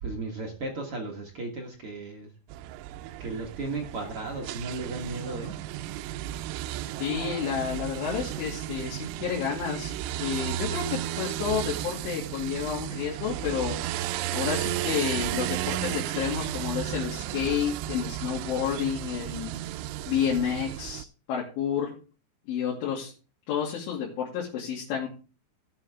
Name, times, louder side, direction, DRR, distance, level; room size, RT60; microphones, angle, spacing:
voice 1, 0.0-2.3 3.2-5.5, right 3 dB, 70° right, 1 dB, 1.3 m, -35 dB
sound 1, 2.5-21.0, right 14 dB, 90° right, 3.1 m, -34 dB
voice 2, 7.0-9.9 10.2-13.8 14.3-19.6 20.1-21.9 22.5-23.1 23.5-25.1, left 8 dB, 85° left, -4 dB, 5.0 m, -30 dB
17.5 x 6.8 x 3.6 m, 0.36 s
omnidirectional pair, 5.4 m